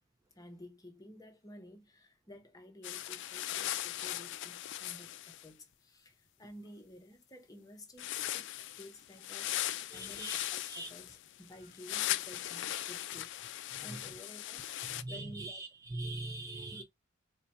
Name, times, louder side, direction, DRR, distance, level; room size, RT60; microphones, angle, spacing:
voice 1, 0.4-15.6 16.7-16.8, left 1 dB, 20° left, 0.7 m, -53 dB
sound 1, 2.8-5.5 8.0-15.0, left 13 dB, 60° left, 0.4 m, -38 dB
voice 2, 9.9-10.9 13.9-14.0 14.9-16.8, right 2 dB, 15° right, 0.4 m, -42 dB
3.9 x 2.2 x 4.1 m
head